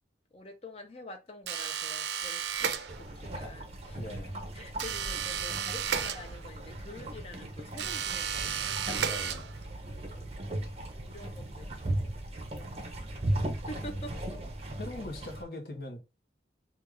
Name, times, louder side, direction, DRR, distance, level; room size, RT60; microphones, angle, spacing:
voice 1, 0.3-4.2 4.5-8.9 10.1-10.5 11.0-12.2 12.5-13.3 13.5-14.2, left 1 dB, 35° left, 0.6 m, -47 dB
sound 1, 1.5-3.3 4.8-6.7 7.7-9.8, right 8 dB, 75° right, 0.4 m, -33 dB
sound 2, 2.9-15.4, right 1 dB, 35° right, 0.6 m, -37 dB
voice 2, 4.0-4.4 9.0-9.5 13.8-14.0 14.8-16.0, left 1 dB, 55° left, 0.8 m, -41 dB
3.4 x 2.4 x 3.3 m
head